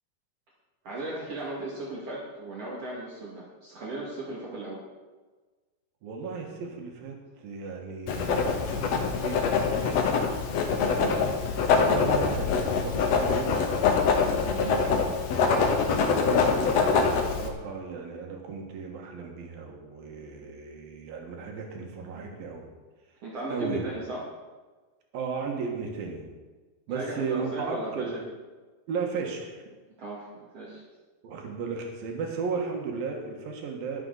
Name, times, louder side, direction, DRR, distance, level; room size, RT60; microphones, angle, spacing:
voice 1, 0.8-4.8 14.3-14.9 23.2-24.2 26.9-28.1 30.0-30.8, right 2 dB, 50° right, -5 dB, 2.9 m, -36 dB
voice 2, 6.0-10.2 10.9-11.2 11.7-13.5 14.5-15.2 16.2-22.7 23.1-23.2 23.5-23.8 25.1-26.3 26.9-28.2 28.9-29.6 31.2-34.0, right 5 dB, 85° right, 1 dB, 3.3 m, -35 dB
Writing, 8.1-17.5, left 5 dB, 60° left, 2.0 m, -24 dB
21.0 x 7.7 x 4.0 m, 1.3 s
omnidirectional pair, 4.0 m